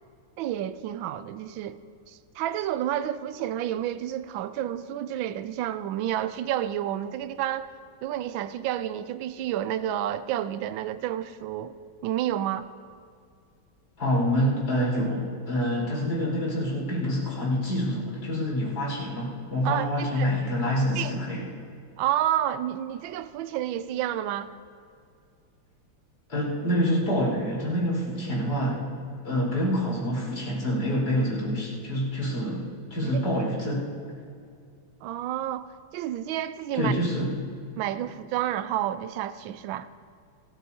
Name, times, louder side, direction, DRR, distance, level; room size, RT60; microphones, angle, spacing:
voice 1, 0.4-1.8 2.1-7.7 8.0-11.7 12.0-12.7 19.6-20.3 21.0-21.1 22.0-24.5 33.0-33.2 35.0-36.9 37.8-39.9, right 11 dB, 75° right, 1.3 m, -30 dB
voice 2, 14.0-21.4 26.3-28.8 29.2-32.6 32.9-33.9 36.7-37.4, equal, 55° left, 5.5 m, -26 dB
28.5 x 14.0 x 2.8 m
omnidirectional pair, 2.3 m